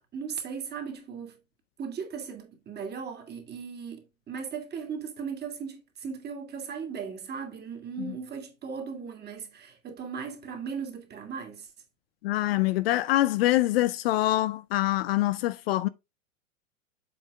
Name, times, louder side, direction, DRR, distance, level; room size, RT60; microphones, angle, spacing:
voice 1, 0.1-1.4 1.8-11.7, right 6 dB, 25° right, 2.3 m, -37 dB
voice 2, 12.2-15.9, left 16 dB, 50° left, 0.5 m, -25 dB
7.7 x 5.3 x 3.6 m
hypercardioid pair, 100°, 40 cm